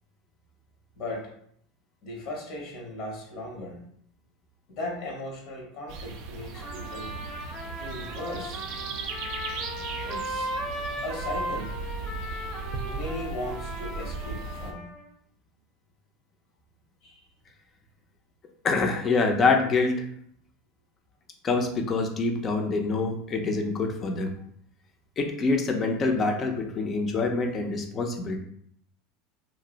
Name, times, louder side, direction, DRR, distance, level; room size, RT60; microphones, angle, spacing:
voice 1, 0.9-1.3 2.0-3.9 4.7-7.1 7.8-8.6 10.1-10.5 11.0-11.7 12.8-14.9 17.0-17.3, left 1 dB, 60° left, -1 dB, 0.9 m, -37 dB
sound 1, 5.9-14.7, right 4 dB, 55° right, 0.4 m, -37 dB
Trumpet, 6.5-15.0, equal, ahead, 0.7 m, -37 dB
voice 2, 18.6-19.9 21.4-24.3 25.2-28.4, left 3 dB, 30° left, 3 dB, 0.5 m, -25 dB
2.7 x 2.0 x 3.8 m, 0.67 s
supercardioid pair, 130°, 0 cm